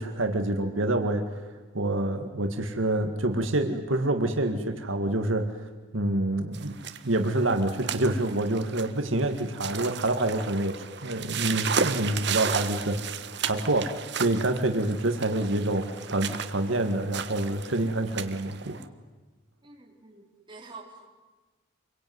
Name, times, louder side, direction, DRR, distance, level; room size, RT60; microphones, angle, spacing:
voice 1, 0.0-6.8 7.0-10.8 11.0-18.8, right 1 dB, 80° right, 5 dB, 2.1 m, -27 dB
sound 1, 6.5-18.8, right 6 dB, 60° right, 1.5 m, -34 dB
voice 2, 19.6-21.1, right 3 dB, 25° right, 0 dB, 4.5 m, -47 dB
27.0 x 23.0 x 9.6 m, 1.2 s
head